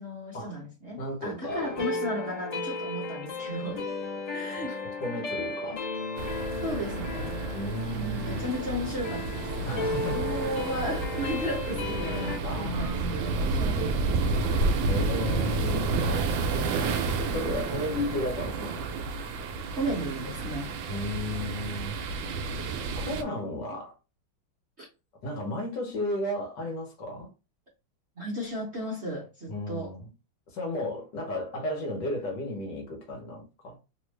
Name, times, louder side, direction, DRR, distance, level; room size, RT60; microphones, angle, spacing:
voice 1, 0.0-3.8 4.3-4.7 6.6-7.4 7.9-14.7 19.7-20.8 24.8-24.9 28.2-29.9, equal, 50° right, 0.8 m, -35 dB
voice 2, 1.0-1.8 3.7-3.9 4.7-5.8 7.5-8.4 9.6-10.2 12.0-13.5 14.9-15.9 16.7-18.9 20.9-21.9 23.0-23.9 25.2-27.3 29.5-30.1 30.5-33.8, left 1 dB, 65° left, 1.5 m, -34 dB
sound 1, 1.5-12.4, left 3 dB, 90° left, 0.3 m, -35 dB
sound 2, 6.2-23.2, right 3 dB, 75° right, 1.2 m, -30 dB
3.4 x 2.4 x 3.2 m
omnidirectional pair, 2.2 m